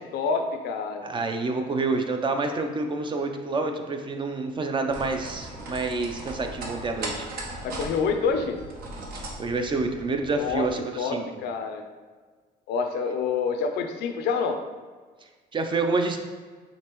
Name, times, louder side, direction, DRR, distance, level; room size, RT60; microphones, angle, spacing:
voice 1, 0.1-1.1 7.6-8.6 10.4-10.7 11.0-11.8 12.7-14.6, left 5 dB, 80° left, 6 dB, 0.5 m, -27 dB
voice 2, 1.0-7.3 9.1-11.2 15.5-16.2, right 3 dB, 30° right, 5 dB, 0.5 m, -28 dB
sound 1, 4.9-10.7, right 2 dB, 60° right, 0.9 m, -38 dB
5.1 x 3.4 x 3.0 m, 1.5 s
cardioid pair, 110°, 17 cm